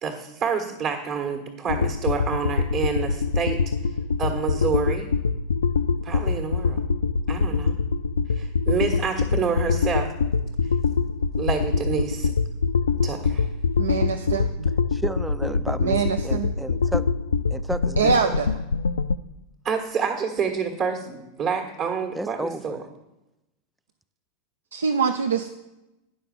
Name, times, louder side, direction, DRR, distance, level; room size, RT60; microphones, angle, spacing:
voice 1, 0.0-3.7 4.2-5.1 6.0-6.8 7.3-7.8 8.3-10.1 11.4-12.3 13.0-13.5 19.6-22.8, right 6 dB, 45° right, 1.5 m, -28 dB
sound 1, 1.7-19.2, left 5 dB, 80° left, 0.3 m, -24 dB
voice 2, 13.8-14.7 15.8-16.5 18.0-18.5 24.7-25.5, right 6 dB, 80° right, 0.5 m, -24 dB
voice 3, 14.9-17.1 17.5-18.3 22.1-22.8, right 2 dB, 10° right, 0.3 m, -32 dB
9.9 x 5.6 x 6.8 m
figure-of-eight pair, 90°, 0 cm